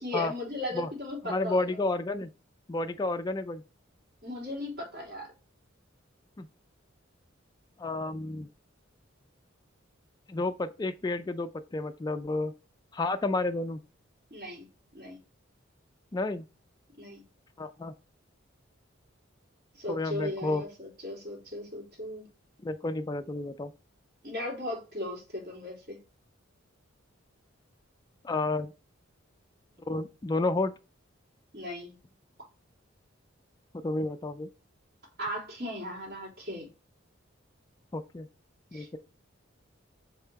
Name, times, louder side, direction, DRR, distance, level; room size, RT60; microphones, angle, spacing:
voice 1, 0.0-1.8 4.2-5.3 14.3-15.2 17.0-17.2 19.8-22.3 24.2-26.0 31.5-31.9 35.2-36.7 38.7-39.0, left 1 dB, 50° right, 3.7 m, -37 dB
voice 2, 1.3-2.3 2.7-3.6 6.4-6.5 7.8-8.5 10.3-12.5 12.9-13.8 16.1-16.4 17.6-17.9 19.9-20.6 22.6-23.7 28.2-28.7 29.9-30.7 33.8-34.5 37.9-38.3 38.7-39.0, left 2 dB, 20° left, 0.4 m, -31 dB
5.5 x 3.8 x 4.5 m
head